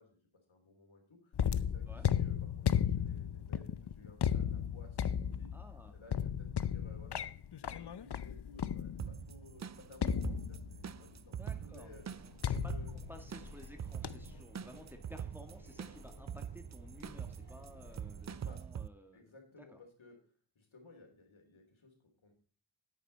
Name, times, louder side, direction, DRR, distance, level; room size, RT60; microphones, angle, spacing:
voice 1, 0.0-5.5 5.9-7.3 7.6-12.9 18.3-18.6 19.1-22.3, left 3 dB, 80° left, 3 dB, 3.4 m, -58 dB
sound 1, 1.3-9.3 10.0-11.0 12.4-13.7 14.0-14.4, left 9 dB, 60° left, 0.6 m, -35 dB
voice 2, 5.5-5.9 11.4-12.0 12.4-19.3 19.7-19.8, equal, 5° right, 5 dB, 1.8 m, -55 dB
sound 2, 9.0-18.9, right 8 dB, 40° right, 0.4 m, -44 dB
sound 3, 11.4-18.4, equal, 20° left, 5.8 m, -56 dB
10.0 x 9.1 x 4.1 m, 0.41 s
wide cardioid pair, 60°, 47 cm